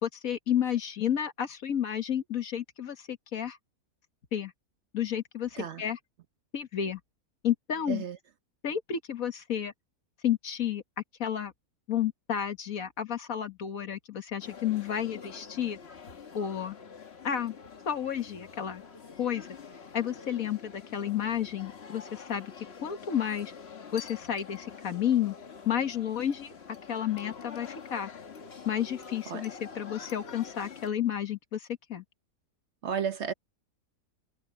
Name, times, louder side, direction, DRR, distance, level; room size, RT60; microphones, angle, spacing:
voice 1, 0.0-3.6 4.3-4.5 4.9-6.0 6.5-7.0 7.4-8.0 8.6-9.7 10.2-10.8 11.2-11.5 11.9-15.8 16.3-16.8 17.2-17.5 17.9-18.8 19.2-19.5 19.9-22.5 22.8-23.5 23.9-25.3 25.7-26.5 26.9-28.1 28.7-32.0, left 9 dB, 70° left, 1.9 m, -31 dB
voice 2, 7.9-8.2 29.3-29.4 32.8-33.3, right 7 dB, 55° right, 1.0 m, -32 dB
sound 1, 14.4-30.9, left 6 dB, 45° left, 1.5 m, -47 dB
omnidirectional pair, 1.5 m